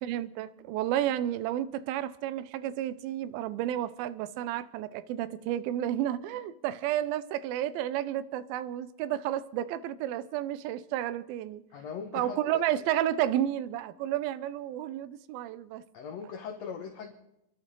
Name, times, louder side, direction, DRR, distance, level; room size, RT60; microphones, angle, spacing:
voice 1, 0.0-11.6 12.1-15.8, right 12 dB, 80° right, 2.5 m, -31 dB
voice 2, 11.7-12.6 15.9-17.1, left 6 dB, 60° left, 1.9 m, -40 dB
29.0 x 12.0 x 3.8 m
omnidirectional pair, 4.4 m